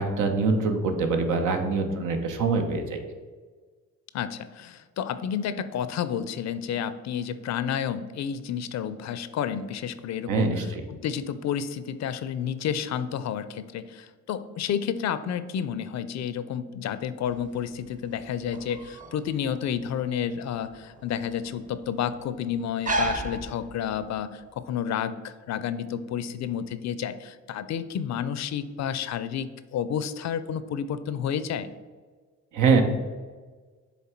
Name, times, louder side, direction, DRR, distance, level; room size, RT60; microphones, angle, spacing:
voice 1, 0.0-3.0 10.3-10.8 32.5-32.8, right 4 dB, 85° right, 5 dB, 1.0 m, -24 dB
voice 2, 4.1-31.7, left 8 dB, 65° left, 13 dB, 0.5 m, -30 dB
sound 1, 17.2-24.2, right 1 dB, 25° right, 0.7 m, -35 dB
7.2 x 3.5 x 4.4 m, 1.4 s
cardioid pair, 90°, 30 cm